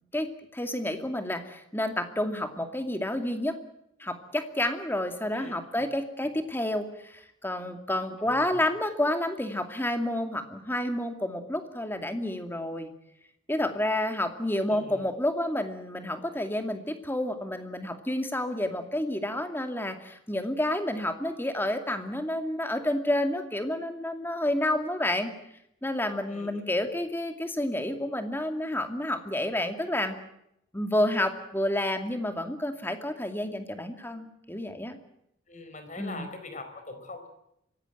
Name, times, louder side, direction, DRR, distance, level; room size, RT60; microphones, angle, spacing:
voice 1, 0.1-3.6 4.0-12.9 13.5-25.3 25.8-30.2 30.7-35.0 36.0-36.3, left 1 dB, 10° left, 7 dB, 2.4 m, -30 dB
voice 2, 5.3-5.8 8.2-8.6 14.6-15.0 26.3-26.7 35.5-37.3, left 3 dB, 40° left, 9 dB, 4.5 m, -43 dB
24.5 x 17.5 x 9.1 m, 0.78 s
head